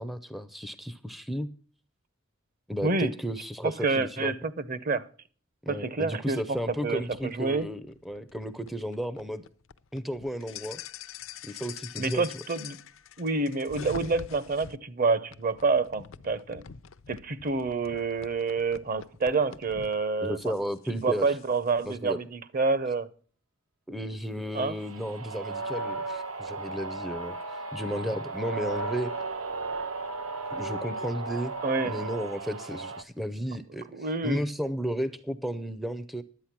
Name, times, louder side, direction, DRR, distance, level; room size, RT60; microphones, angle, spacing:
voice 1, 0.0-1.5 2.7-4.3 5.7-9.4 9.9-10.8 11.4-12.2 20.2-21.3 21.8-22.2 23.9-29.1 30.5-31.5 31.8-36.2, equal, ahead, 0.5 m, -33 dB
voice 2, 2.8-3.1 3.6-5.1 5.7-6.6 6.8-7.7 12.0-12.8 13.2-16.6 17.1-20.5 20.9-23.1 24.5-24.8 31.6-31.9 33.9-34.4, right 3 dB, 45° right, 0.7 m, -28 dB
sound 1, 6.4-14.8 15.3-20.0 20.4-22.0, left 7 dB, 70° left, 0.5 m, -46 dB
sound 2, 24.8-33.0, right 3 dB, 80° right, 1.0 m, -35 dB
11.5 x 8.6 x 5.9 m
head